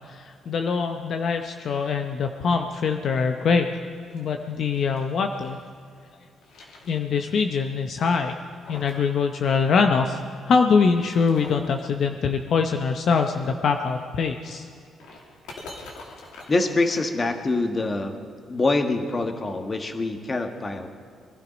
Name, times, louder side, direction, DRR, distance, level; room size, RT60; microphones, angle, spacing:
voice 1, 0.1-3.7 4.1-5.6 6.9-8.3 8.7-10.2 10.5-14.7, left 5 dB, 60° left, 5 dB, 0.8 m, -23 dB
sound 1, 3.9-5.7 6.1-7.4 7.7-7.8 8.3-9.1 9.3-9.4 10.7-11.8 13.7-17.8, left 2 dB, 90° left, 2.6 m, -46 dB
voice 2, 16.5-20.9, left 2 dB, 30° left, 6 dB, 1.6 m, -25 dB
22.0 x 12.0 x 5.2 m, 2.3 s
cardioid pair, 90°, 0 cm